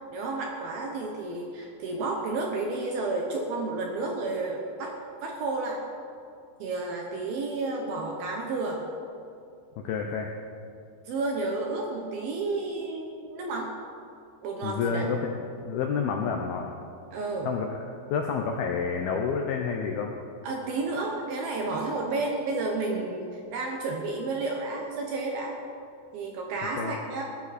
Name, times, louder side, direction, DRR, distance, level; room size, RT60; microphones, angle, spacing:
voice 1, 0.1-4.9 5.2-5.8 6.6-8.8 11.1-13.7 14.4-15.0 17.1-17.5 20.4-25.5 26.1-27.2, right 3 dB, 70° right, 1 dB, 2.4 m, -31 dB
voice 2, 9.8-10.3 14.6-15.3 15.6-16.7 17.5-17.8 18.1-20.1 26.8-27.0, left 6 dB, 80° left, 2 dB, 2.2 m, -29 dB
18.5 x 13.0 x 4.3 m, 2.5 s
omnidirectional pair, 5.4 m